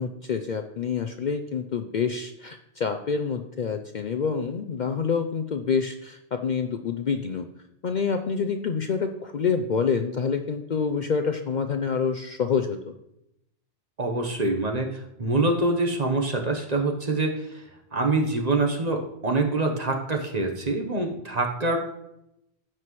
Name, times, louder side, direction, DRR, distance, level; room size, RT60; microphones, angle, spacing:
voice 1, 0.0-7.5 7.8-12.8, left 6 dB, 50° left, 6 dB, 0.6 m, -27 dB
voice 2, 14.0-17.6 17.9-21.8, right 2 dB, 40° right, 3 dB, 1.1 m, -25 dB
15.0 x 6.0 x 3.1 m, 0.83 s
omnidirectional pair, 1.1 m